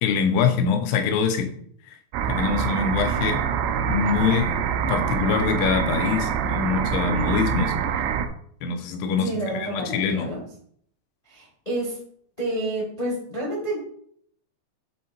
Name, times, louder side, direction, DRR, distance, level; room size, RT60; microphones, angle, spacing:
voice 1, 0.0-1.5 2.3-3.4 3.9-4.6 4.9-7.7 8.6-10.3, left 6 dB, 85° left, 6 dB, 3.2 m, -24 dB
sound 1, 2.1-8.3, right 7 dB, 90° right, 3.0 m, -25 dB
voice 2, 9.2-10.4 11.2-12.0 12.4-13.8, right 1 dB, 70° left, -5 dB, 0.3 m, -29 dB
7.9 x 3.7 x 4.4 m, 0.63 s
omnidirectional pair, 5.2 m